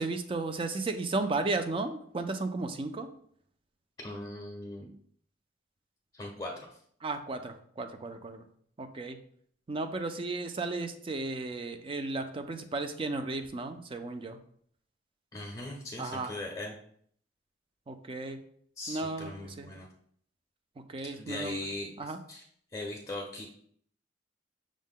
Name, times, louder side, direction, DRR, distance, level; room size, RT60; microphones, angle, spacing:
voice 1, 0.0-3.1 7.0-8.5 8.8-9.2 9.7-14.4 16.0-16.3 17.9-18.4 18.9-19.7 20.9-21.6 22.0-22.2, right 3 dB, 30° right, 8 dB, 0.4 m, -34 dB
voice 2, 4.0-4.9 6.1-6.7 15.3-16.7 18.8-19.9 21.2-21.9 22.3-22.4 22.7-23.5, left 2 dB, 25° left, -2 dB, 0.6 m, -39 dB
6.2 x 2.1 x 3.6 m, 0.63 s
head